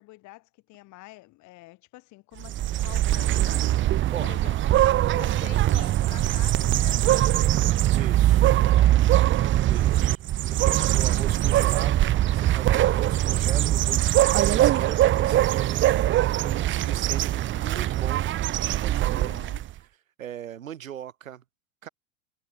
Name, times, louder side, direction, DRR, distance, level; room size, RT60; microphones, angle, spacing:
voice 1, 0.0-3.8 4.2-4.6 4.9-7.5 8.6-9.0 10.9-11.4 19.1-19.7, left 21 dB, 45° left, 3.7 m, -46 dB
sound 1, 2.4-19.7, right 13 dB, 30° right, 1.0 m, -22 dB
voice 2, 7.9-8.5 9.7-10.2 10.4-18.3 18.6-19.3 20.2-21.4 21.8-21.9, right 10 dB, 75° right, 2.4 m, -39 dB
figure-of-eight pair, 85°, 41 cm